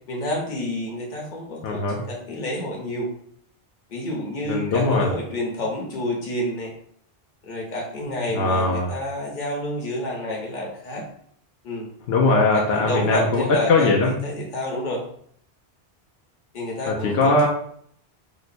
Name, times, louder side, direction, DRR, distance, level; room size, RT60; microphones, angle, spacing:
voice 1, 0.1-3.1 3.9-6.7 7.4-11.0 11.6-11.9 12.5-15.0 16.5-17.5, left 1 dB, 50° left, -2 dB, 1.0 m, -29 dB
voice 2, 1.6-2.0 4.5-5.1 8.0-8.9 12.1-14.1 16.9-17.5, left 3 dB, 80° left, -1 dB, 0.8 m, -20 dB
3.0 x 2.0 x 4.1 m, 0.63 s
omnidirectional pair, 1.0 m